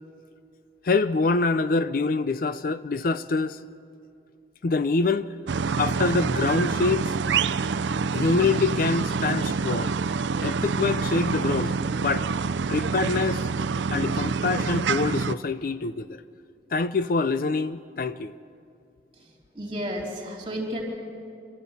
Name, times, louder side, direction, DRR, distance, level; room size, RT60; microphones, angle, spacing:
voice 1, 0.8-3.6 4.6-5.3 5.7-7.1 8.1-9.9 10.4-12.3 12.7-13.5 13.9-16.2 16.7-18.3, left 3 dB, 50° left, 0.5 m, -25 dB
sound 1, 5.5-15.3, right 5 dB, 90° right, 0.5 m, -26 dB
voice 2, 19.1-20.8, equal, 30° right, 3.8 m, -33 dB
26.5 x 13.0 x 8.3 m
head